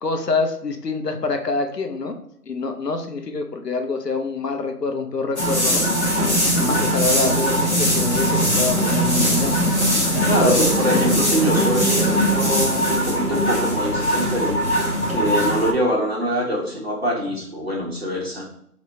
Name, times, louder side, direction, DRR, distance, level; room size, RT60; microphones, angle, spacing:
voice 1, 0.0-2.1 2.5-5.9 6.5-9.7 10.4-10.6 10.9-11.1, left 3 dB, 80° left, 5 dB, 0.9 m, -26 dB
sound 1, 5.4-15.7, equal, 45° left, 1.1 m, -20 dB
voice 2, 6.4-6.8 10.3-18.5, equal, 40° right, -3 dB, 1.1 m, -24 dB
3.2 x 3.0 x 3.9 m, 0.69 s
figure-of-eight pair, 175°, 47 cm